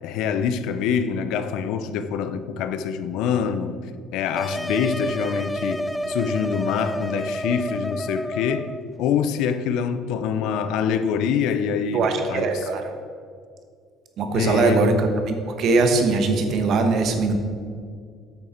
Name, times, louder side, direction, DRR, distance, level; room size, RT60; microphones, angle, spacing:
voice 1, 0.0-3.8 4.1-8.7 9.0-12.5 14.3-14.9, left 7 dB, 80° left, 0.5 m, -25 dB
sound 1, 4.3-8.8, equal, 5° left, 0.3 m, -29 dB
voice 2, 11.9-12.9 14.2-17.4, right 3 dB, 55° right, 1.1 m, -21 dB
8.6 x 6.5 x 4.4 m
cardioid pair, 125°, 0 cm